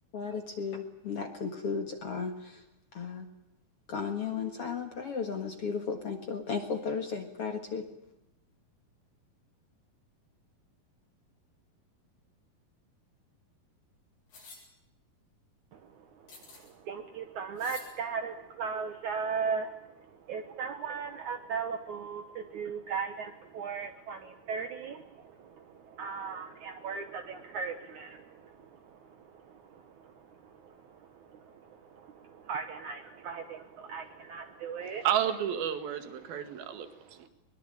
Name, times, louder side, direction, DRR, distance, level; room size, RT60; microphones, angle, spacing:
voice 1, 0.1-2.3 3.0-3.3 3.9-7.8, left 5 dB, 50° left, 5 dB, 2.1 m, -34 dB
sound 1, 14.3-14.6 16.3-16.7 17.6-17.9, left 4 dB, 80° left, 9.4 m, -49 dB
voice 2, 15.7-35.1 36.2-37.3, right 5 dB, 65° right, 6 dB, 2.4 m, -38 dB
voice 3, 35.0-37.2, right 10 dB, 80° right, 9 dB, 3.7 m, -31 dB
22.5 x 22.0 x 9.0 m, 0.89 s
omnidirectional pair, 4.3 m